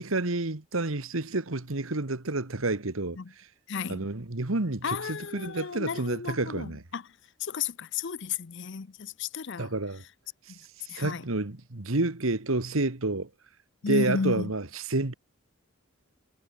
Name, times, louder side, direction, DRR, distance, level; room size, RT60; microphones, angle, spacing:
voice 1, 0.0-3.2 3.9-6.8 9.6-10.0 10.8-13.3 13.9-15.1, right 2 dB, 70° right, 1.6 m, -29 dB
voice 2, 3.7-4.0 4.8-7.0 7.4-9.7 10.9-11.2 13.8-14.5, left 5 dB, 55° left, 0.6 m, -33 dB
head